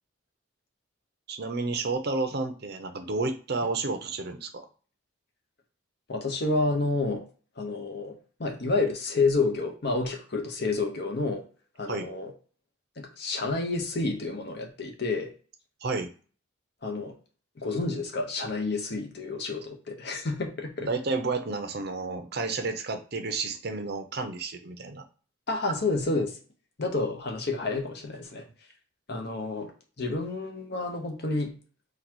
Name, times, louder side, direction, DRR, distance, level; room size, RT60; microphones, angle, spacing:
voice 1, 1.3-4.7 11.9-12.1 15.8-16.1 20.8-25.0, right 3 dB, 50° right, 7 dB, 0.6 m, -31 dB
voice 2, 6.1-7.2 7.6-11.4 11.8-12.3 13.0-15.3 16.8-17.1 17.6-20.9 25.5-26.4 26.8-28.4 29.1-29.7 30.0-31.5, left 3 dB, 50° left, 3 dB, 0.9 m, -29 dB
3.9 x 2.3 x 4.5 m, 0.39 s
head